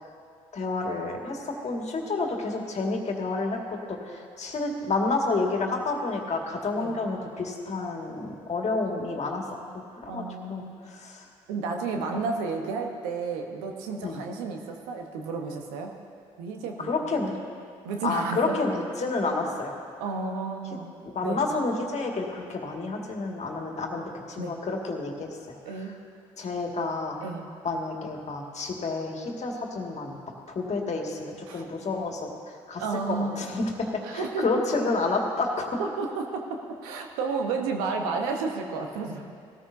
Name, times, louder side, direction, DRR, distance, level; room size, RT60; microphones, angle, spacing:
voice 1, 0.5-9.4 9.7-10.2 10.5-10.6 10.9-11.2 11.9-12.2 14.0-14.2 16.8-17.4 18.0-19.7 21.0-25.6 26.4-27.1 27.6-30.2 30.5-32.3 32.7-35.7, left 3 dB, 45° left, 1 dB, 2.0 m, -30 dB
voice 2, 10.1-10.8 11.5-15.9 16.4-17.1 17.8-18.6 20.0-20.9 21.2-21.4 24.4-24.6 25.7-25.9 27.2-27.5 31.5-31.6 32.8-33.4 34.0-34.6 35.8-39.2, right 4 dB, 85° right, 3 dB, 1.1 m, -32 dB
17.5 x 13.5 x 2.7 m, 2.3 s
hypercardioid pair, 55°, 16 cm